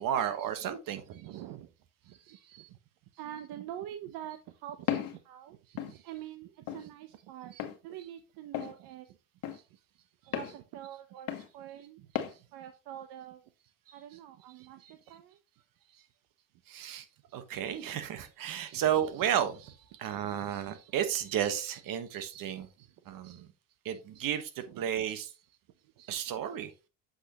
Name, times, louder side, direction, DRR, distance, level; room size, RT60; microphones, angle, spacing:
voice 1, 0.0-1.1 2.5-2.7 16.7-17.1 17.3-22.7 23.0-23.5 23.8-25.3 26.0-26.9, right 10 dB, 60° right, 11 dB, 1.4 m, -33 dB
voice 2, 1.1-1.7 2.0-2.8 3.2-5.6 5.9-7.6 7.8-9.2 10.2-13.4 13.9-15.4 18.7-18.8 22.8-23.1 24.7-24.9 25.8-25.9, right 11 dB, 75° right, 10 dB, 0.9 m, -46 dB
Walk footsteps, 4.9-5.2 5.8-5.9 6.7-6.8 7.6-7.8 8.5-8.7 9.4-9.6 10.3-10.5 11.3-11.5 12.1-12.3, left 10 dB, 60° left, 1.4 m, -34 dB
7.9 x 6.4 x 3.0 m, 0.30 s
cardioid pair, 105°, 38 cm